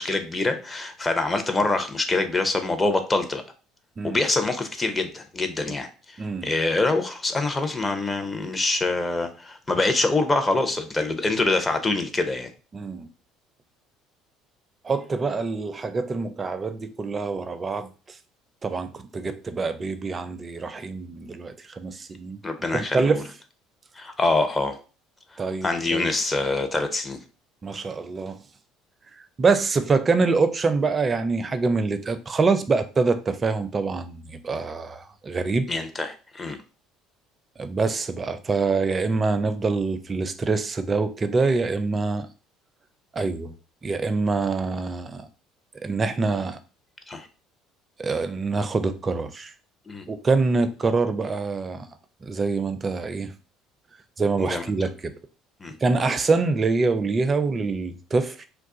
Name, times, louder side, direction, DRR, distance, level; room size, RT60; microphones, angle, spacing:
voice 1, 0.0-3.4 4.0-6.2 6.4-12.5 22.4-23.2 24.0-24.8 25.6-27.2 35.7-36.6 47.1-47.3 49.9-50.1 54.4-54.7 55.6-55.7, left 2 dB, 25° left, 0.6 m, -25 dB
voice 2, 6.2-6.5 12.7-13.1 14.8-17.9 18.6-22.4 22.7-23.2 25.4-26.1 27.6-28.4 29.4-35.7 37.6-42.3 43.1-43.5 43.8-45.3 45.8-46.6 48.0-49.5 50.1-51.9 52.2-53.3 54.2-55.1 55.8-58.5, right 4 dB, 30° right, 0.4 m, -25 dB
2.3 x 2.3 x 3.7 m
hypercardioid pair, 75°, 0 cm